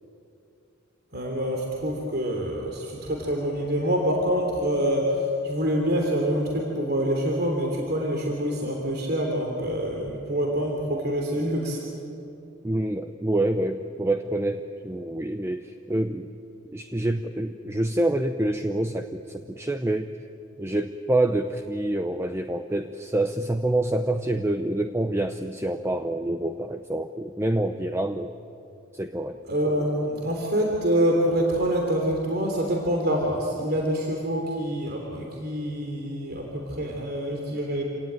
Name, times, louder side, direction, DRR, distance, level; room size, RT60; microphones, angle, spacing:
voice 1, 1.1-11.8 29.5-37.8, equal, 50° right, 1 dB, 3.2 m, -26 dB
voice 2, 12.6-16.3 16.7-20.1 20.6-28.3 28.9-29.4, right 1 dB, 15° right, 7 dB, 0.7 m, -27 dB
27.5 x 18.0 x 9.3 m, 2.8 s
head